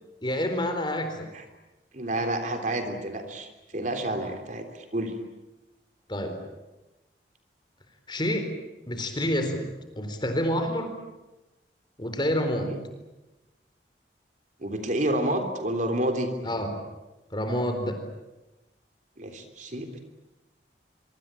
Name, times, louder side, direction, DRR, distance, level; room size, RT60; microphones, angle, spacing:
voice 1, 0.2-1.3 6.1-6.4 8.1-8.5 8.9-9.7 10.0-10.9 12.0-12.7 16.4-16.7 17.3-18.0, equal, 25° left, 7 dB, 4.1 m, -28 dB
voice 2, 1.9-5.1 12.6-12.8 14.6-16.3 19.2-20.0, right 1 dB, 45° right, 6 dB, 3.4 m, -29 dB
25.0 x 24.5 x 9.0 m, 1.0 s
head